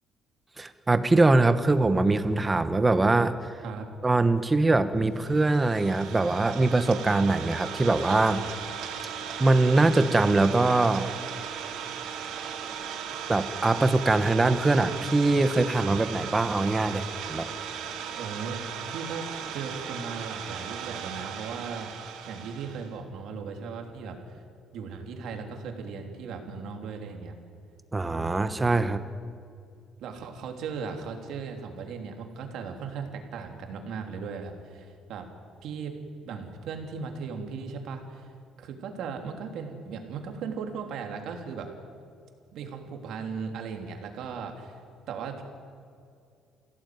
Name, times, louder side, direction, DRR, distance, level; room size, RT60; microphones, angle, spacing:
voice 1, 0.6-3.5 4.0-8.4 9.4-11.1 13.3-17.5 27.9-29.0, right 2 dB, 15° right, 11 dB, 1.0 m, -23 dB
Idling, 5.2-22.9, right 7 dB, 85° right, 3.8 m, -37 dB
voice 2, 18.1-18.6 18.9-19.2 19.5-21.9 22.3-24.4 24.7-27.3 30.0-35.3 35.6-35.9 36.2-38.3 38.6-41.7 42.5-44.8 45.1-45.4, right 5 dB, 65° right, 3 dB, 3.2 m, -37 dB
27.5 x 16.5 x 9.5 m, 2.4 s
cardioid pair, 175°, 0 cm